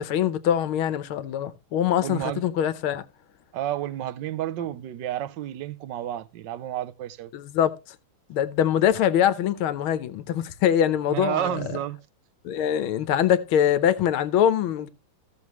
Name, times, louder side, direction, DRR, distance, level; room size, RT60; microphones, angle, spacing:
voice 1, 0.0-3.0 7.3-7.8 8.3-11.8 12.4-14.9, left 10 dB, 80° left, 1.7 m, -23 dB
voice 2, 2.0-2.5 3.5-7.3 11.1-12.0, right 12 dB, 70° right, 1.3 m, -30 dB
15.5 x 7.1 x 3.0 m
omnidirectional pair, 2.3 m